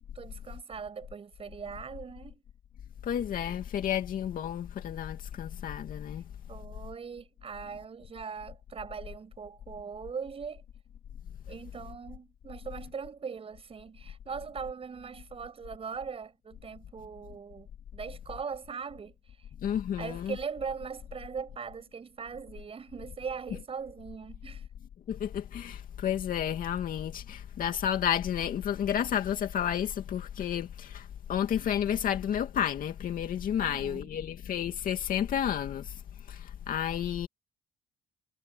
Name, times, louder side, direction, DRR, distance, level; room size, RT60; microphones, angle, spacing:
voice 1, 0.1-2.4 6.5-10.6 11.5-19.5 20.0-24.7 33.6-34.1, right 6 dB, 35° right, 7.9 m, -40 dB
voice 2, 3.0-6.2 19.6-20.3 25.1-36.0 36.3-37.3, left 9 dB, 55° left, 2.5 m, -31 dB
cardioid pair, 110°, 17 cm